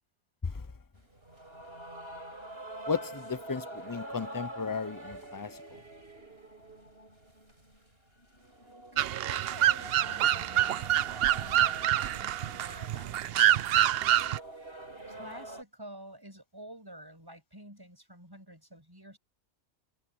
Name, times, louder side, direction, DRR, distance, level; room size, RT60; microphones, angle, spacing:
sound 1, 0.9-15.6, right 1 dB, 40° right, 7.6 m, -46 dB
voice 1, 2.9-5.6, left 5 dB, 20° left, 0.6 m, -34 dB
voice 2, 8.9-19.2, right 1 dB, 15° right, 8.0 m, -50 dB
sound 2, 9.0-14.4, right 12 dB, 70° right, 0.6 m, -26 dB
omnidirectional pair, 1.5 m